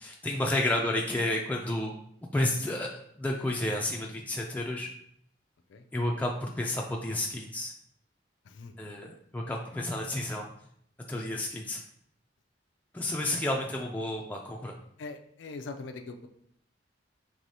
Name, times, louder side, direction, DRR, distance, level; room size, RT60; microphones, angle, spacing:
voice 1, 0.0-1.9 2.3-4.9 5.9-7.7 8.8-10.5 11.1-11.8 12.9-14.7, left 1 dB, 10° left, -1 dB, 0.3 m, -31 dB
voice 2, 15.0-16.3, left 3 dB, 85° left, 6 dB, 0.4 m, -43 dB
4.7 x 3.3 x 2.7 m, 0.70 s
head